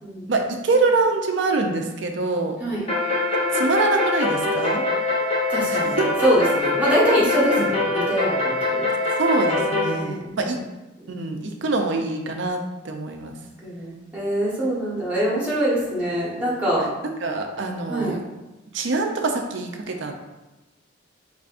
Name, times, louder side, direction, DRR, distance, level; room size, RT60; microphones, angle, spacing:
voice 1, 0.3-2.6 3.5-4.8 5.7-6.1 7.6-7.7 9.2-10.6 11.1-13.4 16.8-18.2 18.7-20.1, right 3 dB, 65° right, 3 dB, 0.5 m, -24 dB
sound 1, 2.9-9.9, left 2 dB, 30° left, 0.7 m, -23 dB
voice 2, 5.5-8.8 9.8-10.4 13.6-16.9 17.9-18.1, equal, 10° right, -7 dB, 1.2 m, -24 dB
4.8 x 3.3 x 2.5 m, 1.0 s
head